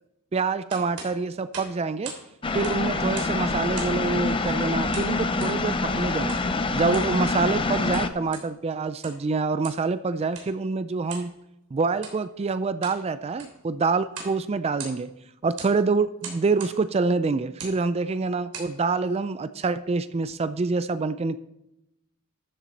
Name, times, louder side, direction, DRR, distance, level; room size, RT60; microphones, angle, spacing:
voice 1, 0.3-2.1 2.5-6.4 6.7-11.3 11.7-15.1 15.4-21.4, right 4 dB, 30° right, 14 dB, 0.3 m, -26 dB
sound 1, 0.7-2.3 2.5-3.4 3.7-4.1 4.9-5.6 6.3-6.5 6.8-7.2 7.7-8.5 8.9-9.3 9.6-9.9 10.3-10.5 11.1-11.3 11.9-12.2 12.6-13.0 13.3-13.6 14.1-14.4 14.6-15.2 15.6-15.8 16.2-16.8 17.5-17.8 18.3-18.7, right 5 dB, 85° right, 3.2 m, -40 dB
sound 2, 2.4-8.1, left 3 dB, 25° left, 0.5 m, -26 dB
13.0 x 7.3 x 4.0 m, 0.87 s
head